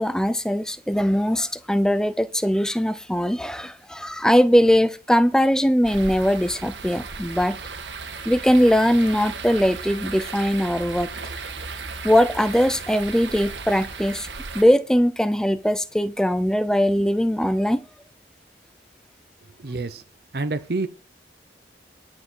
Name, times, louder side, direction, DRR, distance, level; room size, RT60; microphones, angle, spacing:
voice 1, 0.0-7.6 8.3-11.1 12.0-14.3 14.5-17.8, equal, 5° left, 0.5 m, -20 dB
sound 1, 5.8-14.6, right 4 dB, 85° right, 1.7 m, -35 dB
voice 2, 19.6-20.0 20.3-20.9, right 3 dB, 60° right, 0.7 m, -27 dB
11.0 x 5.9 x 6.2 m
head